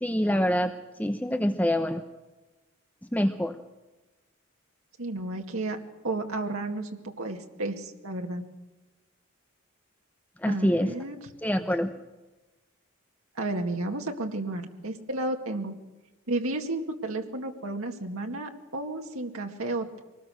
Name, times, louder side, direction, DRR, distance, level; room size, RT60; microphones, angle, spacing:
voice 1, 0.0-0.7 1.0-2.0 3.1-3.6 10.4-10.9 11.4-11.9, equal, 5° left, 7 dB, 0.8 m, -25 dB
voice 2, 5.0-5.8 6.0-8.4 10.5-11.2 13.4-15.7 16.3-20.0, right 2 dB, 75° right, 3 dB, 2.1 m, -32 dB
24.0 x 19.5 x 6.5 m, 1.1 s
head